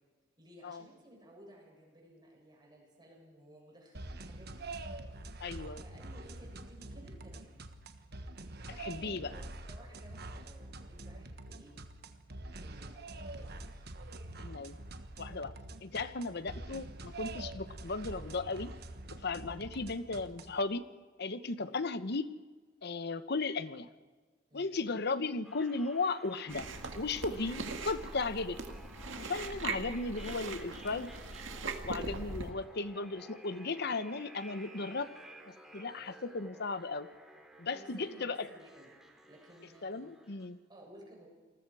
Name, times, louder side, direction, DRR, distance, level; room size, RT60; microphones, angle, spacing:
voice 1, 0.4-4.7 5.8-7.6 8.6-11.8 12.6-13.9 16.4-16.5 21.6-21.8 24.5-24.8 32.2-32.4 37.7-38.9 39.3-40.3 40.7-41.3, right 1 dB, 25° right, -1 dB, 7.6 m, -56 dB
sound 1, 3.9-20.6, right 2 dB, 55° right, 1.4 m, -46 dB
voice 2, 5.4-5.8 8.8-9.3 14.4-14.8 15.2-15.5 15.8-18.7 19.1-20.8 21.2-22.3 22.8-23.9 24.5-26.7 26.9-28.6 29.2-31.1 31.8-35.1 35.5-37.1 37.6-38.5 39.8-40.6, left 3 dB, 60° left, 12 dB, 1.0 m, -36 dB
sound 2, 25.4-40.5, right 1 dB, 5° right, 3.5 m, -55 dB
Chewing mastication, 26.5-32.5, right 3 dB, 75° right, 2.1 m, -41 dB
28.0 x 20.5 x 4.9 m, 1.4 s
head